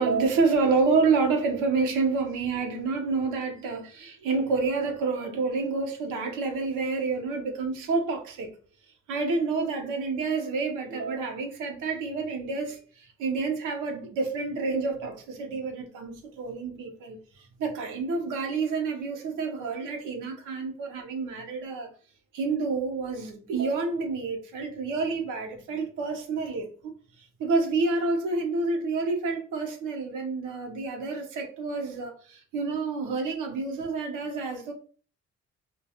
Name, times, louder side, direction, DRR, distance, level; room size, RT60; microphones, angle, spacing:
voice 1, 0.0-8.5 9.1-17.2 17.6-21.9 22.3-26.7 27.2-34.7, right 4 dB, 90° right, 0.7 m, -28 dB
2.3 x 2.2 x 2.7 m
cardioid pair, 90°, 30 cm